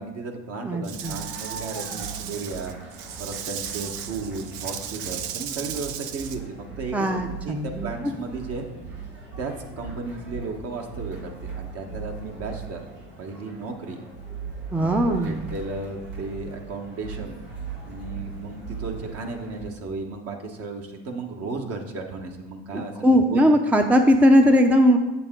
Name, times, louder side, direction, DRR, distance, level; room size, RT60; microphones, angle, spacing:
voice 1, 0.0-8.7 9.4-12.8 13.2-14.0 14.8-17.4 17.9-23.4, right 3 dB, 55° right, 3 dB, 1.3 m, -34 dB
voice 2, 0.6-1.1 6.9-7.9 14.7-15.4 22.7-25.0, equal, 5° right, 5 dB, 0.5 m, -19 dB
Rattle / Rattle (instrument), 0.8-6.4, right 10 dB, 70° right, 0.6 m, -35 dB
sound 1, 1.0-19.7, right 5 dB, 85° right, 2.3 m, -39 dB
8.0 x 6.7 x 3.7 m, 1.0 s
supercardioid pair, 95°, 29 cm